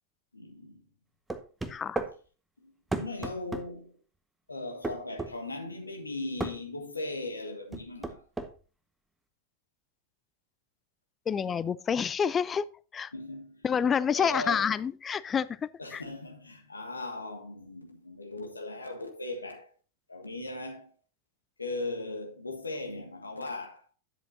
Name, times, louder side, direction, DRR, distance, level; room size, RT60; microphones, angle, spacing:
voice 1, 0.3-0.9 2.6-4.0 4.5-8.2 13.1-13.6 14.2-14.7 15.8-19.7 20.1-20.9 21.6-23.8, left 2 dB, 80° left, 1.4 m, -38 dB
sound 1, 1.3-2.1 2.9-3.7 4.8-5.3 6.4-6.6 7.7-8.5, right 3 dB, 10° right, 0.8 m, -33 dB
voice 2, 1.7-2.0 3.0-3.1 11.3-12.7 12.9-13.1 13.6-16.0, left 7 dB, 20° left, 0.4 m, -28 dB
10.5 x 7.4 x 2.7 m
figure-of-eight pair, 90°, 0 cm